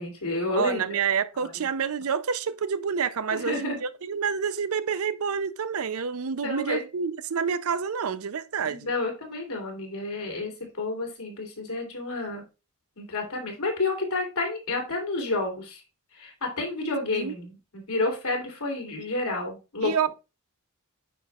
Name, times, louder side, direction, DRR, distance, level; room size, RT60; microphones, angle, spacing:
voice 1, 0.0-0.9 1.4-1.5 3.3-3.8 6.4-6.8 8.6-10.5 10.8-12.4 13.0-15.8 16.2-20.1, left 2 dB, 80° left, 2.9 m, -30 dB
voice 2, 0.6-8.9 17.1-17.3 19.8-20.1, right 6 dB, 75° right, 0.6 m, -28 dB
9.3 x 5.9 x 2.4 m
head